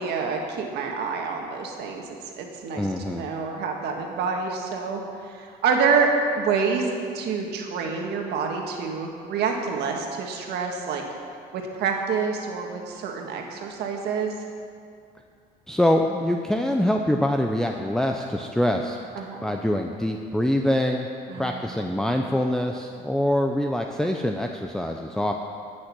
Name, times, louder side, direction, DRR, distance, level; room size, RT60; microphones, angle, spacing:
voice 1, 0.0-6.1 6.4-11.0 11.5-14.3 19.2-19.4 21.3-21.8, right 5 dB, 75° right, 2 dB, 1.7 m, -27 dB
voice 2, 2.8-3.3 15.7-19.0 19.4-21.1 21.4-25.3, left 1 dB, 5° left, 2 dB, 0.6 m, -24 dB
15.5 x 6.5 x 6.2 m, 2.3 s
cardioid pair, 110°, 17 cm